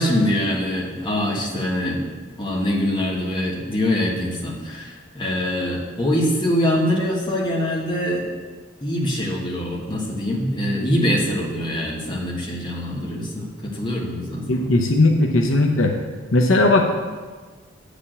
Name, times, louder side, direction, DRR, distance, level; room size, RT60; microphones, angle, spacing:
voice 1, 0.0-2.0 2.4-8.2 8.8-14.7, left 1 dB, 25° left, -3 dB, 1.5 m, -24 dB
voice 2, 14.5-15.9 16.3-16.8, left 2 dB, 70° left, 3 dB, 0.8 m, -17 dB
8.4 x 5.1 x 7.4 m, 1.4 s
head